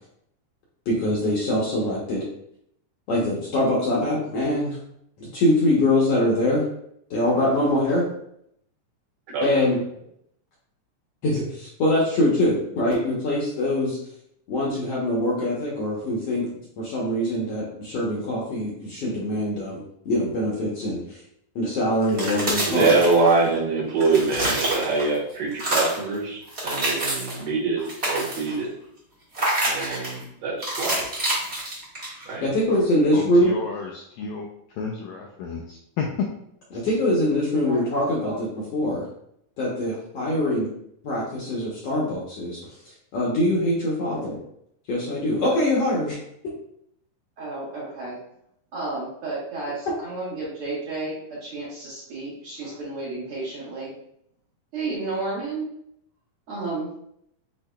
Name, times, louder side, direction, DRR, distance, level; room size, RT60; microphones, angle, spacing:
voice 1, 0.9-2.2 3.1-4.8 5.2-6.6 7.1-8.0 9.4-9.8 11.2-14.0 14.5-16.5 16.8-21.2 21.5-23.0 32.4-33.6 36.7-38.5 38.7-39.1 39.6-40.7 41.0-42.6 43.1-44.4 44.9-46.2, left 1 dB, 65° left, -4 dB, 1.6 m, -23 dB
sound 1, 22.0-23.6 23.9-25.2 25.5-26.1 26.5-27.4 27.8-28.6 29.3-30.2 30.6-32.3, right 1 dB, 35° right, 1.0 m, -27 dB
voice 2, 22.7-28.7 29.6-31.0 32.3-32.4, right 3 dB, 85° right, -4 dB, 3.1 m, -24 dB
voice 3, 33.1-34.5 34.7-36.3 36.7-36.8, left 5 dB, 85° left, 0 dB, 1.6 m, -31 dB
voice 4, 47.4-48.2 48.7-53.9 54.7-55.7 56.5-56.9, right 3 dB, 60° right, -6 dB, 1.6 m, -32 dB
8.3 x 2.8 x 2.2 m, 0.72 s
omnidirectional pair, 3.7 m